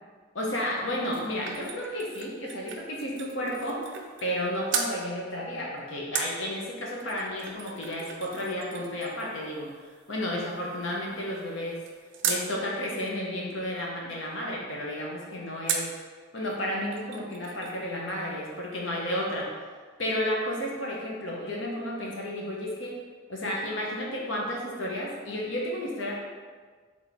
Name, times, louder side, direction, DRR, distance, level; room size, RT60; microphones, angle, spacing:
voice 1, 0.3-3.8 4.2-11.8 12.2-15.9 16.3-19.5 20.0-23.0 23.3-26.2, left 1 dB, 70° left, -3 dB, 1.0 m, -32 dB
sound 1, 0.8-4.4 4.7-5.0 6.1-12.5 15.7-16.0 16.5-16.6 16.8-17.8 18.1-18.2, right 6 dB, 65° right, 0.5 m, -37 dB
4.1 x 3.5 x 3.5 m, 1.5 s
head